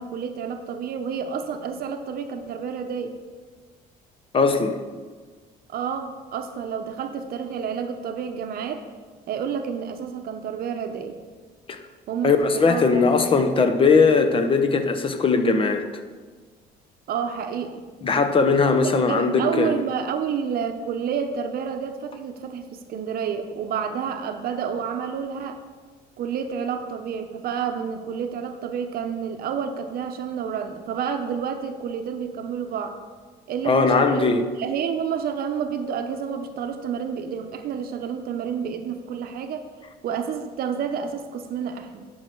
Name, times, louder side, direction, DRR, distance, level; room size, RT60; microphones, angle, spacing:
voice 1, 0.0-3.2 5.7-8.8 9.3-11.2 12.1-13.1 13.4-13.5 17.1-17.8 18.8-25.6 26.2-33.0 33.5-34.3 34.6-39.7 40.0-42.1, right 7 dB, 65° right, 7 dB, 0.8 m, -29 dB
voice 2, 4.3-4.8 11.7-11.8 12.2-15.8 18.0-19.8 33.6-34.4, left 4 dB, 30° left, 8 dB, 0.8 m, -19 dB
10.0 x 6.3 x 4.5 m, 1.5 s
cardioid pair, 110°, 17 cm